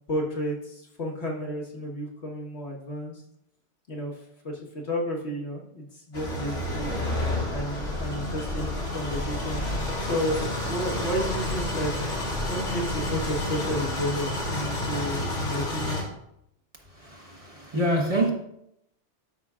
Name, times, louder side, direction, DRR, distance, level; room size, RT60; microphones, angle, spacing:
voice 1, 0.1-3.2 3.9-6.9 7.5-11.9 12.3-16.0, equal, 65° left, 1.8 m, -32 dB
sound 1, 6.1-16.0, left 1 dB, 80° left, 2.4 m, -30 dB
voice 2, 16.8-18.3, right 1 dB, 30° right, 1.2 m, -26 dB
12.5 x 5.5 x 2.4 m
omnidirectional pair, 1.2 m